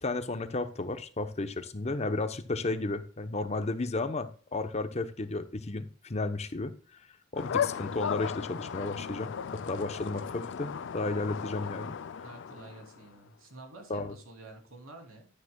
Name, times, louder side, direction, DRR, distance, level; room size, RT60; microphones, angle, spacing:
voice 1, 0.0-6.7 7.3-12.0 13.9-14.1, left 2 dB, 30° left, 9 dB, 0.9 m, -33 dB
sound 1, 7.4-13.1, left 7 dB, 60° left, 0.4 m, -36 dB
voice 2, 12.2-15.3, right 2 dB, 90° right, 3 dB, 2.9 m, -49 dB
12.0 x 9.1 x 2.3 m, 0.40 s
head